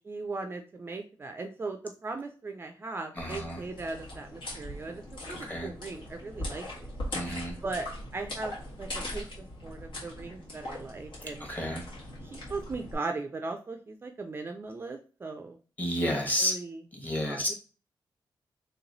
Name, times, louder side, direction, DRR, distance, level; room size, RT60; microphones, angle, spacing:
voice 1, 0.0-6.9 7.6-11.4 12.5-15.6 16.1-16.8 17.3-17.5, right 3 dB, 25° right, 4 dB, 0.3 m, -38 dB
voice 2, 3.1-3.6 5.3-5.7 7.1-7.6 11.4-11.9 15.8-16.5 16.9-17.5, equal, 20° left, 1 dB, 1.1 m, -31 dB
sound 1, 3.2-12.9, left 1 dB, 80° left, 1.6 m, -40 dB
3.2 x 2.9 x 3.9 m, 0.36 s
wide cardioid pair, 165°, 8 cm